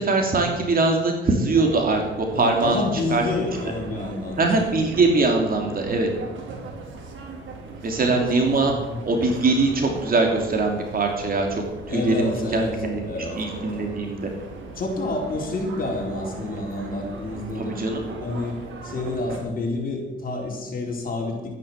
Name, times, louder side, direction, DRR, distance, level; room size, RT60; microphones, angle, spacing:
voice 1, 0.0-2.0 2.3-2.8 3.1-3.2 4.4-6.1 7.8-8.7 9.0-13.0 13.4-14.3 17.6-18.0, right 3 dB, 45° right, 3 dB, 3.0 m, -22 dB
sound 1, 1.5-19.4, right 3 dB, 75° right, 3.9 m, -39 dB
voice 2, 2.3-4.7 8.0-8.2 8.6-9.0 11.9-13.7 14.8-18.6 18.8-21.5, left 2 dB, 45° left, 0 dB, 4.3 m, -29 dB
12.5 x 10.5 x 7.4 m, 1.1 s
cardioid pair, 90°, 20 cm